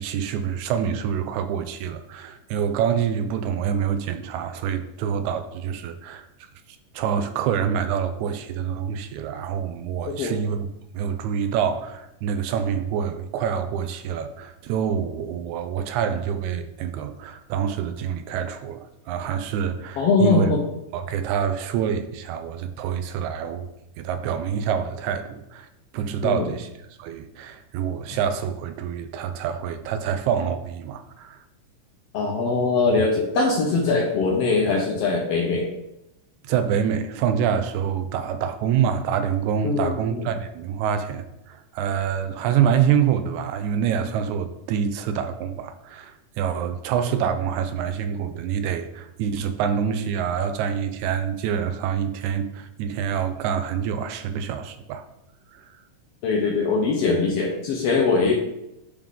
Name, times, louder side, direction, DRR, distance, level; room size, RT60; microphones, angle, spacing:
voice 1, 0.0-6.3 6.9-10.7 10.9-20.5 20.9-23.7 24.0-25.7 25.9-26.7 27.0-31.4 36.4-55.1 55.5-55.6, right 8 dB, 80° right, 8 dB, 1.8 m, -26 dB
voice 2, 20.0-20.6 26.2-26.5 32.1-35.7 39.6-40.2 56.2-58.3, left 4 dB, 75° left, 0 dB, 1.4 m, -22 dB
9.2 x 3.7 x 3.6 m, 0.87 s
omnidirectional pair, 3.6 m